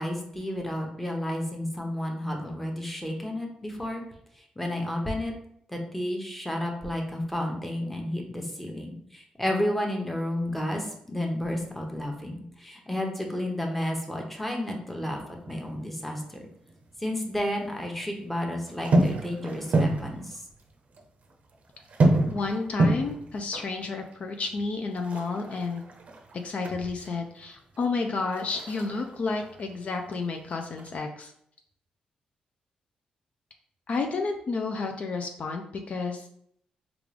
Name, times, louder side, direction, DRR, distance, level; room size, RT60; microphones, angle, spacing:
voice 1, 0.0-4.0 4.4-5.3 5.7-15.2 15.5-16.5 17.0-20.4, left 1 dB, 5° left, 1 dB, 0.8 m, -31 dB
sound 1, 15.3-17.0 17.2-18.2 18.7-20.7 20.9-21.0 21.3-27.1 27.6-30.2 30.4-31.0, right 2 dB, 60° right, 0.5 m, -28 dB
voice 2, 22.3-25.8 26.3-31.3 33.9-36.3, left 4 dB, 55° left, 4 dB, 0.4 m, -31 dB
3.6 x 2.3 x 3.3 m, 0.70 s
cardioid pair, 75°, 3 cm